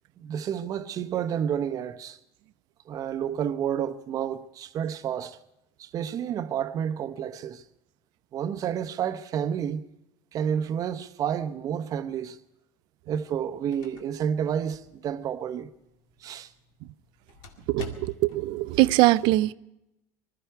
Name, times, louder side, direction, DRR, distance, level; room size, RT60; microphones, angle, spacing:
voice 1, 0.2-2.2 2.9-5.4 5.8-7.6 8.3-9.8 10.3-12.4 13.1-15.7 16.2-16.5, right 8 dB, 45° right, 0.8 m, -30 dB
sound 1, 13.3-18.5, left 4 dB, 70° left, 2.1 m, -47 dB
voice 2, 17.7-19.5, right 18 dB, 65° right, 0.5 m, -22 dB
20.5 x 13.5 x 4.6 m
supercardioid pair, 115°, 9 cm